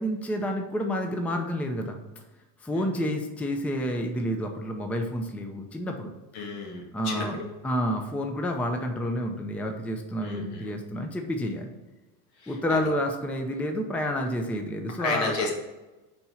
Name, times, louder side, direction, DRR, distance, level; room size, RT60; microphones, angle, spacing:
voice 1, 0.0-2.0 2.6-6.1 6.9-7.4 7.6-11.8 12.5-15.3, equal, 5° left, 3 dB, 0.5 m, -29 dB
voice 2, 2.7-3.1 6.3-7.5 10.2-10.7 12.4-12.8 15.0-15.5, left 3 dB, 75° left, 0 dB, 2.0 m, -33 dB
4.6 x 4.3 x 5.5 m, 1.1 s
supercardioid pair, 105°, 46 cm